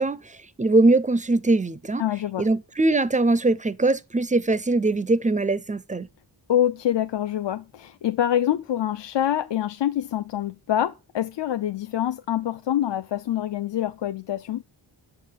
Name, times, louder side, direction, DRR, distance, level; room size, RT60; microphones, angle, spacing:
voice 1, 0.0-2.0 2.4-6.1, right 2 dB, 20° right, 0.4 m, -22 dB
voice 2, 2.0-2.5 6.5-14.6, left 11 dB, 65° left, 0.6 m, -25 dB
6.9 x 5.7 x 7.4 m
wide cardioid pair, 105°, 46 cm